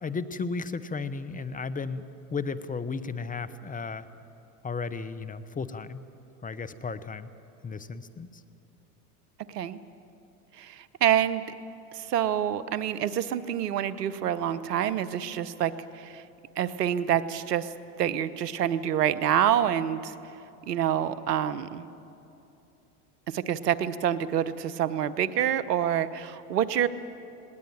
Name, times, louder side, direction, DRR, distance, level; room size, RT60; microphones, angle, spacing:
voice 1, 0.0-4.1 4.6-6.0 6.4-7.3 7.6-8.4, left 4 dB, 20° left, 13 dB, 0.8 m, -34 dB
voice 2, 10.6-11.4 11.9-16.2 16.6-17.7 18.0-20.1 20.7-21.9 23.3-26.9, right 10 dB, 90° right, 15 dB, 1.0 m, -27 dB
19.5 x 18.5 x 9.1 m, 2.8 s
hypercardioid pair, 90°, 46 cm